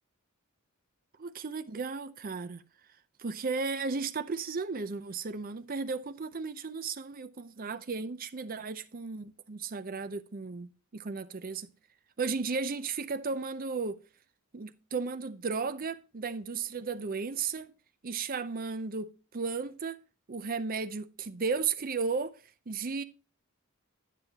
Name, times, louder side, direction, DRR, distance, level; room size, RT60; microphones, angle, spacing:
voice 1, 1.2-2.6 3.2-11.7 12.2-14.0 14.5-17.7 18.0-20.0 20.3-22.4 22.7-23.0, right 4 dB, 40° right, 0.6 m, -34 dB
9.3 x 9.1 x 2.9 m
head